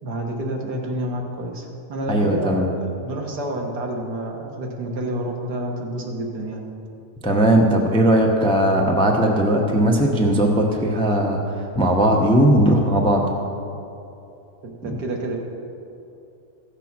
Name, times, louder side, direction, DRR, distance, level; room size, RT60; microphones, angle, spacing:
voice 1, 0.0-6.6 14.6-15.4, right 1 dB, 75° right, 0 dB, 1.9 m, -29 dB
voice 2, 2.1-2.7 7.2-11.4 11.7-13.3 14.9-15.0, right 1 dB, 5° left, 0 dB, 0.6 m, -18 dB
14.5 x 6.9 x 6.0 m, 2.8 s
omnidirectional pair, 1.8 m